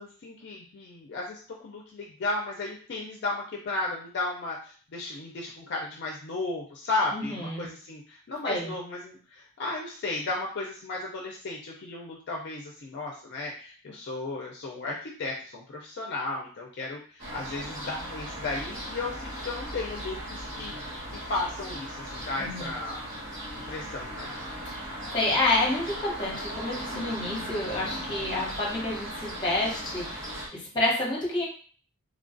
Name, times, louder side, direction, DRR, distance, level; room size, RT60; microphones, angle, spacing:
voice 1, 0.0-23.0 23.5-24.3, left 2 dB, 50° left, -1 dB, 0.4 m, -34 dB
voice 2, 7.1-7.7 8.4-8.7 22.4-22.7 24.8-31.4, left 2 dB, 20° left, -4 dB, 1.0 m, -29 dB
sound 1, 17.2-30.5, equal, 55° right, 0.9 m, -37 dB
3.2 x 2.3 x 2.5 m, 0.43 s
head